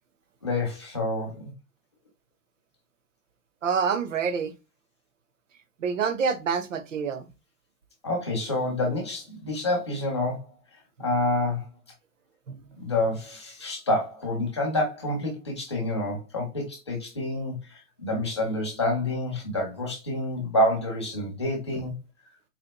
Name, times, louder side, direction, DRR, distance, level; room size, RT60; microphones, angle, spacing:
voice 1, 0.4-1.4 8.0-10.5 11.0-11.6 12.8-21.9, left 1 dB, 20° left, 0.6 m, -28 dB
voice 2, 3.6-4.5 5.8-7.3 12.5-12.6, right 6 dB, 55° right, 0.7 m, -27 dB
4.2 x 2.9 x 2.9 m
hypercardioid pair, 170°, 47 cm